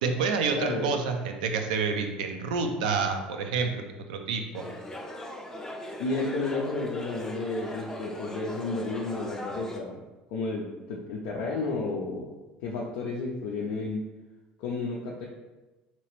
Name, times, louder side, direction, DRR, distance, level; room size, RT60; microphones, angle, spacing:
voice 1, 0.0-3.8 4.1-4.6, right 5 dB, 70° right, 5 dB, 0.4 m, -28 dB
voice 2, 0.5-1.0 6.0-10.0 10.3-12.3 12.6-14.0 14.6-15.2, left 3 dB, 65° left, -2 dB, 0.4 m, -32 dB
sound 1, 4.5-9.8, left 1 dB, 10° left, 0.5 m, -39 dB
3.1 x 2.9 x 2.9 m, 1.1 s
figure-of-eight pair, 65°, 4 cm